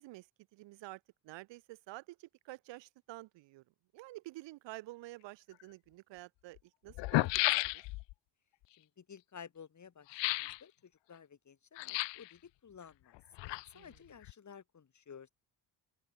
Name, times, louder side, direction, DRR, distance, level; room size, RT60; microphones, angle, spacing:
voice 1, 0.0-3.6 3.9-7.8 13.7-14.0, right 19 dB, 85° right, 1.8 m, -50 dB
sound 1, 5.6-5.7 6.6-6.7 6.9-8.1 10.1-10.6 11.8-12.3 13.1-13.9 14.2-14.3, left 22 dB, 80° left, 0.7 m, -33 dB
voice 2, 8.8-13.2 13.4-15.3, left 7 dB, 40° left, 7.9 m, -54 dB
open air
cardioid pair, 100°, 43 cm